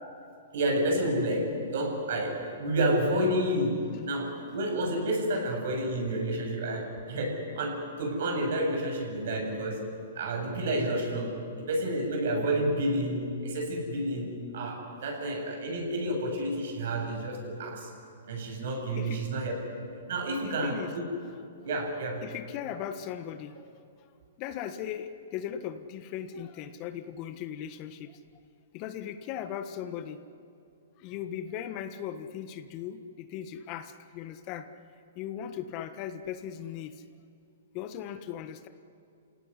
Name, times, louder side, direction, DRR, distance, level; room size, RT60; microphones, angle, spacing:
voice 1, 0.5-9.8 10.1-17.9 18.3-21.0 21.6-22.2, right 1 dB, 65° right, 1 dB, 7.9 m, -30 dB
voice 2, 20.4-20.9 22.2-23.6 24.4-28.2 28.7-30.2 31.0-34.7 35.1-37.0 37.7-38.7, left 9 dB, 40° left, 9 dB, 1.5 m, -38 dB
29.0 x 17.5 x 9.9 m, 2.4 s
hypercardioid pair, 130°, 0 cm